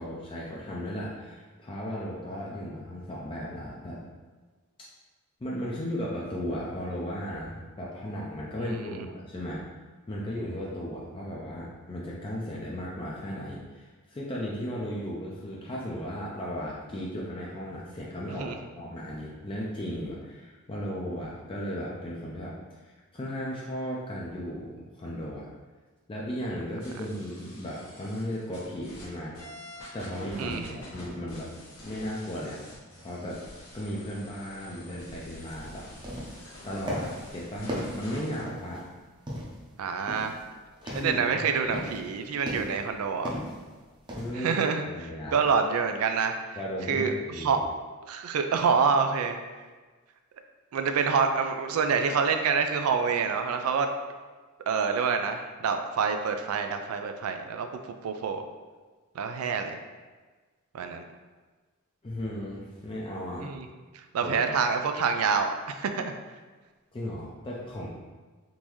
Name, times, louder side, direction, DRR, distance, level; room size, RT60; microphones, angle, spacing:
voice 1, 0.0-4.0 5.4-9.6 10.1-18.5 18.8-22.5 22.8-25.5 26.1-29.4 29.9-31.5 31.8-32.6 33.0-33.4 33.7-35.9 36.6-38.8 40.8-41.2 44.2-44.5 44.9-45.5 46.6-47.6 62.0-63.5 64.2-64.4 66.9-67.9, equal, 25° left, -4 dB, 0.4 m, -35 dB
voice 2, 8.6-9.0 18.4-18.6 30.4-30.8 39.8-40.4 40.9-43.4 44.3-46.6 46.9-47.6 48.0-49.4 50.7-53.9 54.7-57.7 58.0-58.4 59.1-59.8 60.7-61.0 63.4-63.7 63.9-66.2, right 5 dB, 90° right, 6 dB, 0.4 m, -27 dB
sound 1, 26.8-29.1 29.3-38.4, left 1 dB, 85° left, 1.2 m, -47 dB
sound 2, 35.4-35.6 35.9-36.5 36.9-37.3 37.7-38.8 39.3-39.7 40.1-40.4 40.7-41.2 41.6-42.0 42.5-42.9 43.2-43.6 44.1-44.3, equal, 20° right, 0.6 m, -36 dB
3.7 x 2.6 x 3.0 m, 1.4 s
head